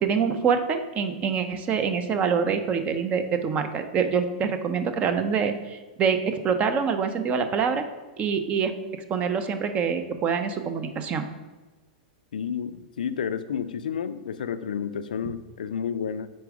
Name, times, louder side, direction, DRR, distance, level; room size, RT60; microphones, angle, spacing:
voice 1, 0.0-7.8 8.2-8.7 9.1-11.2, right 6 dB, 30° right, 8 dB, 0.6 m, -25 dB
voice 2, 12.3-16.3, left 7 dB, 85° left, 12 dB, 0.4 m, -31 dB
4.6 x 4.2 x 4.8 m, 1.2 s
hypercardioid pair, 120°, 4 cm